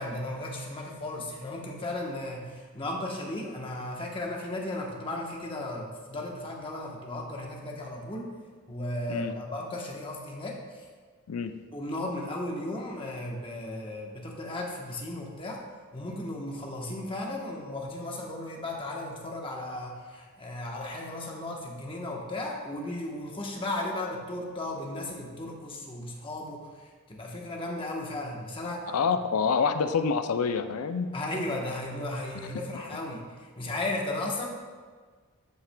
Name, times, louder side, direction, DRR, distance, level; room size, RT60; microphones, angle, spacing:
voice 1, 0.0-8.3 8.7-10.6 11.7-15.6 15.9-28.9 31.1-34.4, left 1 dB, 25° left, -1 dB, 1.0 m, -35 dB
voice 2, 28.9-31.1, left 5 dB, 85° left, 9 dB, 0.5 m, -27 dB
12.5 x 5.8 x 2.2 m, 1.5 s
head